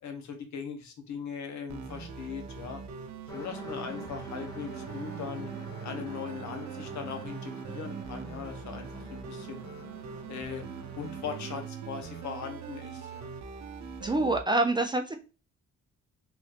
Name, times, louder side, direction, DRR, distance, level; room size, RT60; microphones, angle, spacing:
voice 1, 0.0-2.8 3.3-5.5 5.8-9.6 10.3-10.6 11.0-13.3, left 6 dB, 70° left, 5 dB, 0.9 m, -39 dB
sound 1, 1.7-14.4, right 6 dB, 65° right, 0.6 m, -42 dB
sound 2, 3.3-11.7, right 1 dB, 10° left, 0.8 m, -46 dB
voice 2, 14.0-15.2, right 2 dB, 15° right, 4 dB, 0.4 m, -26 dB
3.0 x 2.5 x 3.2 m, 0.33 s
cardioid pair, 90°, 30 cm